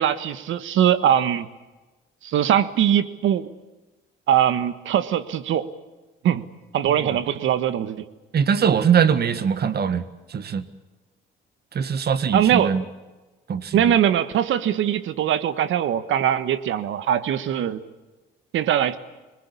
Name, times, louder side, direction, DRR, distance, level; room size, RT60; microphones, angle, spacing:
voice 1, 0.0-1.5 2.2-3.5 4.3-5.7 6.2-6.4 6.7-8.0 12.3-12.7 13.7-17.8 18.5-19.0, right 10 dB, 75° right, 13 dB, 1.6 m, -21 dB
voice 2, 6.9-7.2 8.3-10.0 10.3-10.7 11.7-12.8 13.5-13.9, right 7 dB, 55° right, 13 dB, 1.8 m, -22 dB
26.5 x 20.5 x 8.6 m, 1.1 s
cardioid pair, 90°, 20 cm